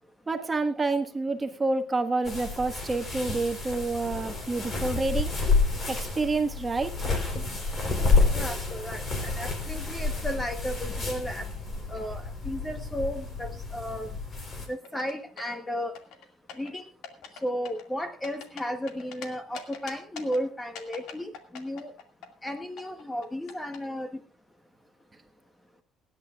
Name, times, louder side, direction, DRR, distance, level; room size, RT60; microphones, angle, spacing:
voice 1, 0.3-5.3 5.9-6.9, right 3 dB, 20° right, 6 dB, 1.6 m, -28 dB
sound 1, 2.2-14.7, left 3 dB, 35° left, 3.9 m, -29 dB
voice 2, 8.3-11.5 11.9-14.1 14.7-15.9 16.6-16.9 17.4-21.9 22.4-24.2, equal, 10° left, 7 dB, 1.1 m, -34 dB
sound 2, 14.8-15.6 16.0-16.7 17.0-17.4 17.7-19.3 19.5-20.4 20.8-22.5 22.8-23.8, left 6 dB, 85° left, 2.3 m, -42 dB
29.5 x 10.0 x 2.5 m, 0.36 s
cardioid pair, 125°, 0 cm